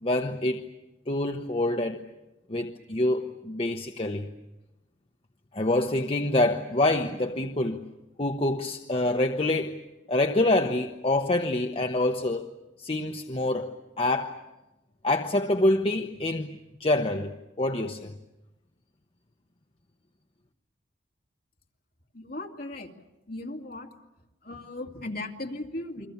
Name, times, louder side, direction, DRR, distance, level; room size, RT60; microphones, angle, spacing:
voice 1, 0.0-0.7 1.1-2.1 2.5-4.3 5.5-7.9 8.2-9.8 10.1-12.5 12.8-14.4 15.0-18.1, left 2 dB, 30° left, 0.9 m, -26 dB
voice 2, 22.1-22.9 23.3-23.9 24.4-26.1, left 2 dB, 50° left, 2.5 m, -37 dB
29.5 x 23.0 x 7.1 m
head